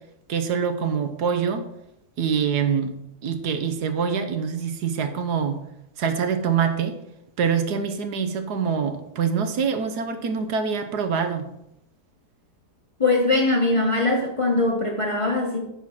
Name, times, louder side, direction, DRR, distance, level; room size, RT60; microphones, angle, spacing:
voice 1, 0.3-1.6 2.2-2.9 3.2-5.6 6.0-6.9 7.4-11.5, right 6 dB, 75° right, 1.5 m, -25 dB
voice 2, 13.0-15.6, left 2 dB, 25° left, 0.9 m, -21 dB
10.5 x 4.4 x 5.9 m
omnidirectional pair, 1.7 m